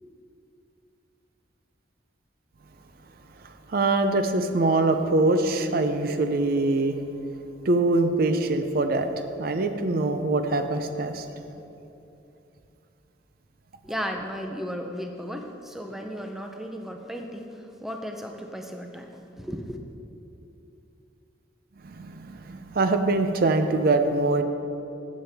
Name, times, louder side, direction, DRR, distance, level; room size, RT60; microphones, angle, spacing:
voice 1, 3.4-7.0 7.6-9.1 9.4-11.3 21.8-24.4, right 2 dB, 50° right, 8 dB, 0.5 m, -23 dB
voice 2, 13.8-19.1 19.4-19.8, equal, ahead, 3 dB, 0.5 m, -35 dB
14.5 x 7.4 x 3.5 m, 2.7 s
head